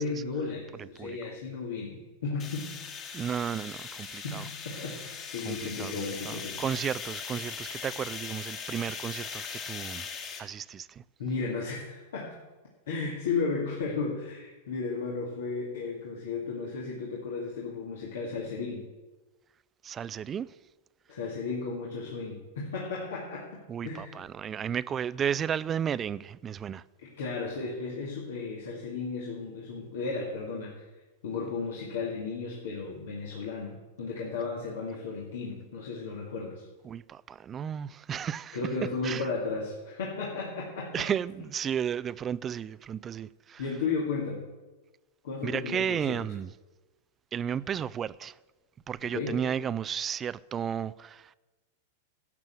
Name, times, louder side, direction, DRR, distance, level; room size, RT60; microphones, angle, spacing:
voice 1, 0.0-2.7 4.1-6.6 11.2-12.4 12.9-18.9 21.1-24.2 27.0-30.9 31.2-36.7 38.5-41.1 43.6-44.4 45.2-46.2 49.0-49.4, left 4 dB, 75° left, 2.3 m, -34 dB
voice 2, 0.8-1.2 3.1-4.5 5.4-10.1 10.4-11.0 19.8-20.5 23.7-26.8 36.8-38.6 39.0-39.3 40.9-43.6 45.4-46.5 47.3-48.4 48.9-51.3, right 8 dB, 25° right, 0.4 m, -33 dB
sound 1, 2.4-10.4, left 6 dB, 35° left, 2.1 m, -40 dB
12.0 x 7.5 x 7.7 m
hypercardioid pair, 110°, 0 cm